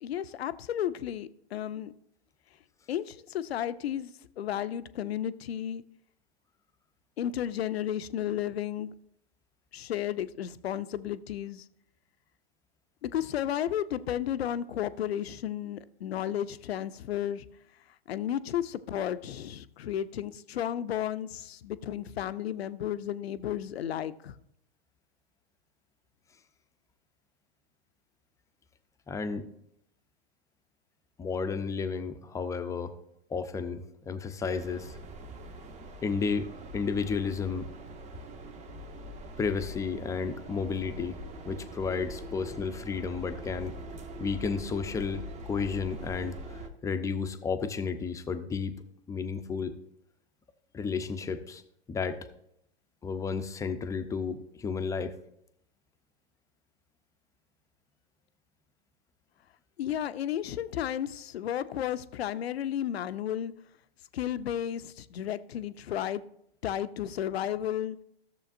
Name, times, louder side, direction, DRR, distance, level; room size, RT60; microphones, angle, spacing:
voice 1, 0.0-1.9 2.9-4.1 4.4-5.8 7.2-8.9 9.7-11.6 13.0-17.5 18.1-24.3 59.8-63.5 64.1-66.2 66.6-68.0, left 10 dB, 75° left, 0.6 m, -33 dB
voice 2, 29.1-29.5 31.2-32.9 33.3-35.0 36.0-37.7 39.4-41.2 41.5-43.8 44.2-48.7 49.1-49.8 50.7-51.6 51.9-52.2 53.0-55.1, left 5 dB, 10° left, 0.5 m, -32 dB
sound 1, 34.5-46.7, equal, 20° right, 0.8 m, -43 dB
14.5 x 7.0 x 2.5 m
hypercardioid pair, 110°, 31 cm